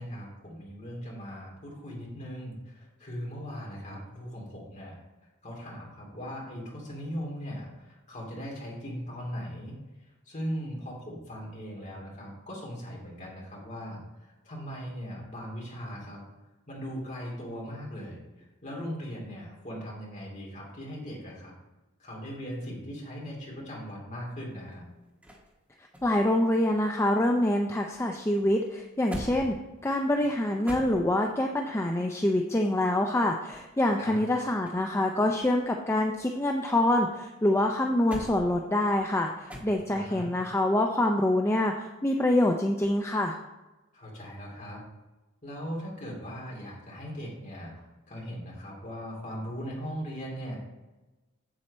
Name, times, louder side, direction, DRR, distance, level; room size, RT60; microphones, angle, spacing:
voice 1, 0.0-5.0 5.4-9.8 10.2-16.2 16.7-18.2 18.6-21.5 22.0-24.8 34.0-34.2 39.9-40.3 43.9-44.8 45.4-50.6, equal, 35° left, -3 dB, 2.9 m, -39 dB
sound 1, 24.4-27.6 27.9-31.5 33.2-35.0 35.3-37.1 37.5-40.2 42.8-43.1, equal, 5° right, 1.5 m, -46 dB
voice 2, 26.0-29.5 29.8-43.4, left 1 dB, 15° left, 2 dB, 0.5 m, -26 dB
7.7 x 7.5 x 4.2 m, 1.1 s
head